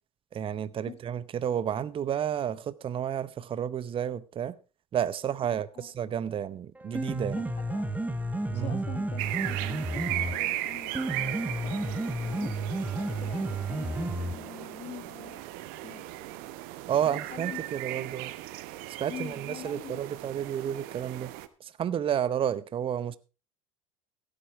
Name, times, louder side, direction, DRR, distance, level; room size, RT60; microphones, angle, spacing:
voice 1, 0.3-4.5 4.9-7.4 8.5-8.8 16.9-18.3 19.0-21.3 21.6-23.2, right 9 dB, 30° right, 0.7 m, -31 dB
voice 2, 5.4-5.9 6.3-6.4 7.4-8.0 8.5-12.6 12.9-15.4 15.8-16.1 17.0-18.2 19.1-20.0, left 9 dB, 40° left, 1.9 m, -45 dB
Piano, 6.8-14.7, right 2 dB, 10° right, 1.2 m, -32 dB
sound 1, 9.2-21.5, right 15 dB, 60° right, 1.1 m, -37 dB
15.5 x 8.9 x 4.5 m
hypercardioid pair, 75°, 17 cm